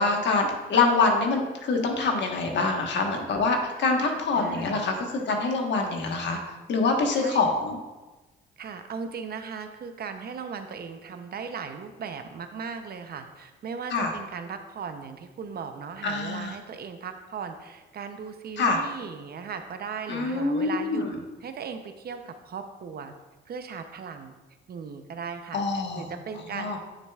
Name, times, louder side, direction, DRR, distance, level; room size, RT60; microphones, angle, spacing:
voice 1, 0.0-6.4 6.7-7.8 13.9-14.1 16.0-16.5 18.6-18.8 20.1-21.2 25.5-26.1 26.5-26.8, left 3 dB, 65° left, 2 dB, 1.3 m, -25 dB
voice 2, 4.3-4.8 7.2-7.6 8.6-21.1 21.4-23.1 23.5-24.3 24.7-26.8, right 6 dB, 50° right, 7 dB, 0.7 m, -37 dB
9.1 x 6.5 x 2.4 m, 1.2 s
cardioid pair, 90°, 20 cm